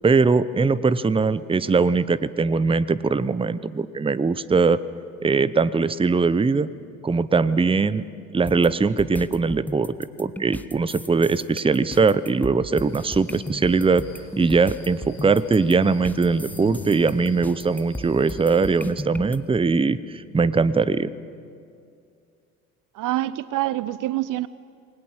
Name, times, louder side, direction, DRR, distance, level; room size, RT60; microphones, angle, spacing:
voice 1, 0.0-4.8 5.2-6.7 7.0-8.0 8.3-14.0 14.4-20.0 20.3-21.1, right 4 dB, 10° right, 17 dB, 0.8 m, -21 dB
sound 1, 8.5-19.4, left 1 dB, 5° left, 1.2 m, -36 dB
sound 2, 12.7-18.9, left 1 dB, 70° left, 6.4 m, -44 dB
voice 2, 22.9-24.5, right 15 dB, 45° right, 18 dB, 0.7 m, -26 dB
28.0 x 21.0 x 7.3 m, 2.4 s
figure-of-eight pair, 55°, 43 cm